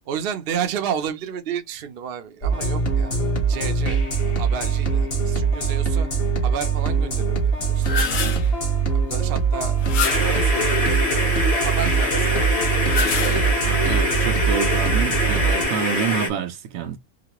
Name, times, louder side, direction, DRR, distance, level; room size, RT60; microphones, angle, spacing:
voice 1, 0.1-3.1 3.4-6.1 6.4-8.3 8.9-9.9 10.1-11.0 11.6-12.5, right 8 dB, 55° right, 0.7 m, -31 dB
sound 1, 2.4-15.6, right 5 dB, 45° left, 1.5 m, -22 dB
sound 2, 7.6-8.5 9.8-10.5 12.7-13.7, left 5 dB, 75° left, 1.2 m, -27 dB
sound 3, 10.0-16.3, left 1 dB, 30° left, 1.0 m, -24 dB
voice 2, 13.6-17.0, right 8 dB, 75° right, 1.0 m, -28 dB
3.9 x 2.2 x 2.9 m
omnidirectional pair, 1.4 m